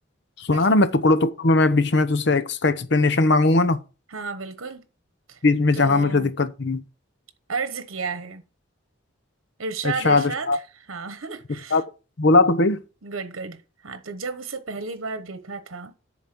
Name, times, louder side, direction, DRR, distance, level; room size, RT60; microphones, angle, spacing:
voice 1, 0.4-3.8 5.4-6.8 10.0-10.6 11.7-11.8 12.2-12.8, left 2 dB, 55° left, 0.8 m, -19 dB
voice 2, 4.1-4.8 5.3-5.4 5.7-6.3 7.5-8.4 9.6-11.8 13.0-15.9, right 4 dB, 80° right, 1.1 m, -33 dB
10.5 x 4.1 x 6.0 m
head